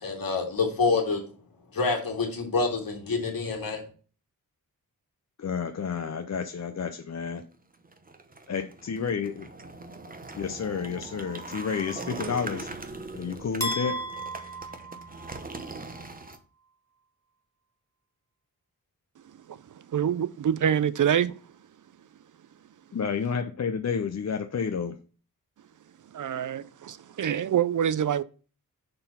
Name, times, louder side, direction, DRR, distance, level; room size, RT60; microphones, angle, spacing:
voice 1, 0.0-1.2 1.7-3.8, left 4 dB, 70° left, 2.4 m, -27 dB
voice 2, 5.4-7.4 8.5-9.5 10.3-14.0 22.9-25.0, left 6 dB, 45° left, 0.6 m, -31 dB
sound 1, 7.7-16.4, right 3 dB, 25° right, 0.9 m, -41 dB
sound 2, 13.6-15.7, right 1 dB, 10° left, 1.6 m, -34 dB
voice 3, 19.9-21.3 26.1-28.2, right 9 dB, 60° right, 0.5 m, -25 dB
6.8 x 3.9 x 5.5 m
wide cardioid pair, 125°, 36 cm